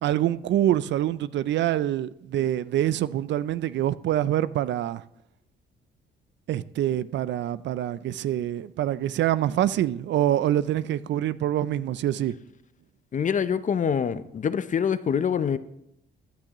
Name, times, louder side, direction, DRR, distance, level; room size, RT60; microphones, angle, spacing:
voice 1, 0.0-5.0 6.5-12.3, right 12 dB, 65° right, 0.4 m, -25 dB
voice 2, 13.1-15.6, left 7 dB, 40° left, 0.6 m, -25 dB
14.5 x 10.5 x 3.0 m
cardioid pair, 90°, 20 cm